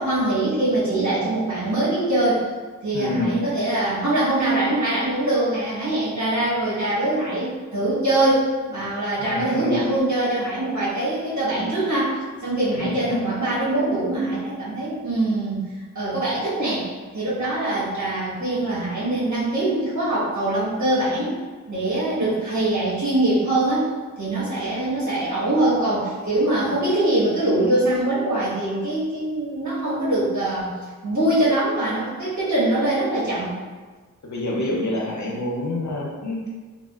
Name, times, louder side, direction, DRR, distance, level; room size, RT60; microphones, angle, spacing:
voice 1, 0.0-2.4 2.8-15.7 15.9-16.9 17.1-21.4 21.7-30.7 31.0-33.5, right 1 dB, 60° right, -10 dB, 1.3 m, -23 dB
voice 2, 2.9-3.3 9.2-9.8 12.7-13.2 34.2-36.5, left 2 dB, 60° left, -3 dB, 0.7 m, -27 dB
3.2 x 2.4 x 2.3 m, 1.4 s
wide cardioid pair, 50°, 32 cm